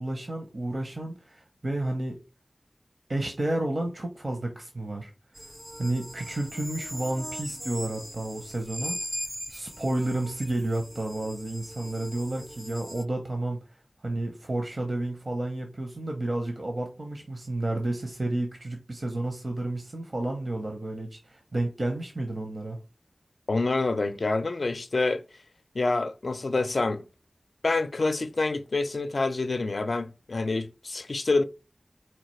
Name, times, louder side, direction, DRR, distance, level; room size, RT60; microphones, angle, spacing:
voice 1, 0.0-2.2 3.1-5.1 5.8-9.0 9.5-13.6 14.0-22.8, right 2 dB, 55° right, 0.7 m, -31 dB
sound 1, 5.4-13.1, equal, 10° right, 0.3 m, -40 dB
voice 2, 23.5-25.2 25.7-27.0 27.6-31.4, left 3 dB, 70° left, 0.4 m, -27 dB
4.4 x 2.4 x 3.1 m
wide cardioid pair, 55°, 0 cm